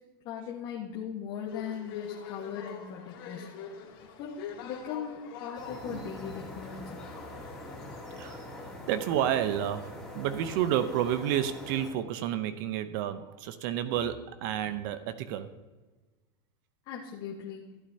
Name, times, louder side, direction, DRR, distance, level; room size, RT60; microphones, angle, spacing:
voice 1, 0.2-3.8 4.2-7.0 16.9-17.7, left 8 dB, 50° left, 1.4 m, -39 dB
sound 1, 1.5-8.7, left 7 dB, 70° left, 2.6 m, -45 dB
sound 2, 5.5-11.9, left 1 dB, ahead, 2.7 m, -43 dB
voice 2, 8.2-15.5, right 10 dB, 60° right, 0.7 m, -31 dB
15.0 x 8.4 x 2.8 m
supercardioid pair, 130°, 12 cm